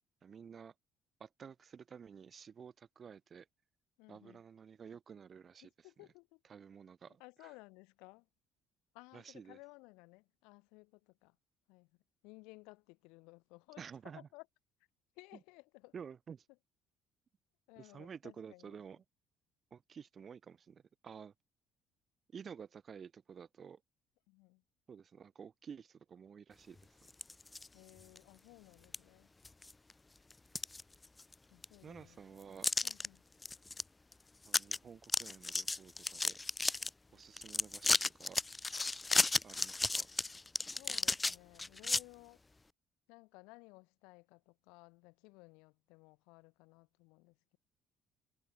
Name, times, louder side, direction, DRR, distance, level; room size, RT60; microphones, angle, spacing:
voice 1, 0.2-0.7 1.2-3.5 4.1-5.7 6.5-7.5 9.1-9.6 13.8-14.3 15.9-16.5 17.8-19.0 19.7-21.3 22.3-23.8 24.9-27.1 31.8-32.7 34.4-36.4 37.1-38.4 39.4-40.1, right 7 dB, 45° right, 6.0 m, -52 dB
voice 2, 4.0-4.4 5.6-6.4 7.1-8.3 8.9-11.4 11.7-12.0 12.2-14.5 15.1-15.9 17.7-18.8 24.3-24.6 27.7-29.3 31.5-32.2 32.8-33.2 36.8-37.2 40.8-42.4 43.1-47.6, left 27 dB, 85° left, 2.6 m, -58 dB
sound 1, 27.1-27.7 28.1-28.2 28.9-29.0 29.4-29.9 30.3-31.3 31.6-31.7 32.6-33.1 33.4-33.8 34.1-34.2 34.5-34.8 35.0-36.9 37.4-42.0, left 3 dB, 20° left, 0.6 m, -34 dB
supercardioid pair, 70°, 0 cm